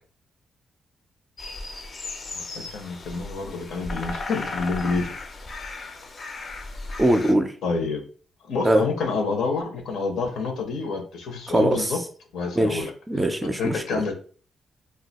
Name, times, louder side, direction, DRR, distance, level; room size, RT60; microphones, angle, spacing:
sound 1, 1.4-7.3, left 3 dB, 40° left, 0.5 m, -35 dB
voice 1, 2.3-5.1 7.6-8.0 8.5-12.0 12.3-12.9 13.4-14.1, left 4 dB, 85° left, 0.8 m, -28 dB
voice 2, 7.0-7.5 8.6-8.8 11.5-11.9 12.6-14.0, right 1 dB, 15° right, 0.4 m, -22 dB
2.6 x 2.3 x 4.0 m
cardioid pair, 125°, 0 cm